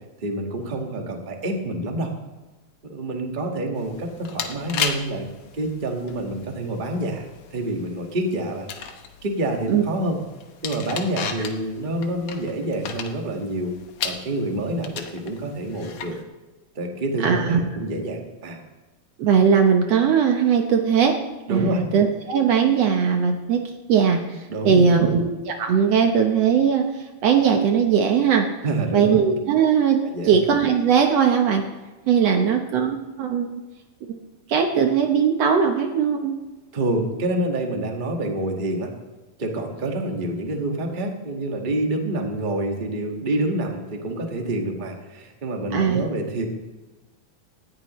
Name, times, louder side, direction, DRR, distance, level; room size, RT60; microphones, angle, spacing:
voice 1, 0.2-2.1 2.8-5.3 5.5-7.2 7.5-8.7 9.2-10.2 10.6-13.7 14.0-16.1 16.7-18.6 21.5-21.8 24.5-25.1 28.6-29.2 30.0-30.3 32.3-32.5 36.7-38.9 39.4-46.5, right 1 dB, 25° right, 2 dB, 1.2 m, -27 dB
sound 1, 3.8-16.2, left 7 dB, 60° left, 1.7 m, -35 dB
voice 2, 17.2-17.6 19.2-21.2 21.5-23.6 23.9-24.2 24.6-25.3 25.6-28.5 28.9-31.6 32.1-33.5 34.5-36.4 45.7-46.0, right 7 dB, 65° right, 4 dB, 1.9 m, -19 dB
18.5 x 14.0 x 3.1 m, 1.1 s
omnidirectional pair, 3.5 m